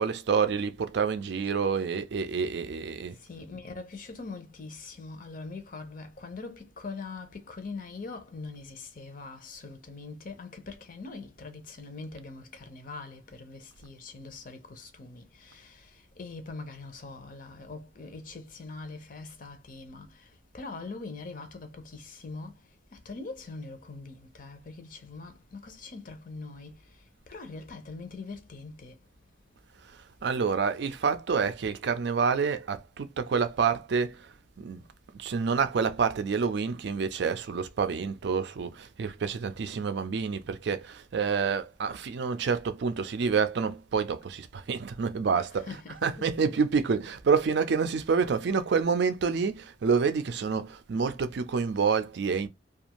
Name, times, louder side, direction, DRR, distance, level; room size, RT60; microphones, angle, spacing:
voice 1, 0.0-3.2 29.8-34.8 35.1-52.5, right 5 dB, 60° right, 0.4 m, -28 dB
voice 2, 3.1-29.0 45.3-46.7, left 3 dB, 45° left, 0.6 m, -43 dB
2.5 x 2.4 x 2.9 m
head